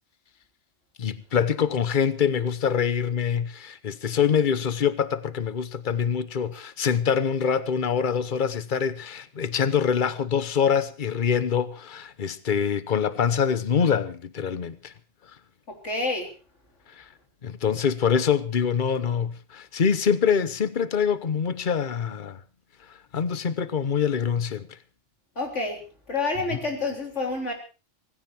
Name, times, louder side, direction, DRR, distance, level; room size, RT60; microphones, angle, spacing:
voice 1, 1.0-14.9 16.9-17.1 17.4-22.4 22.9-24.8, left 7 dB, 45° left, 1.1 m, -25 dB
voice 2, 15.7-16.3 25.4-25.8 26.1-27.5, left 3 dB, 80° left, 4.1 m, -28 dB
18.5 x 16.0 x 4.4 m
omnidirectional pair, 1.2 m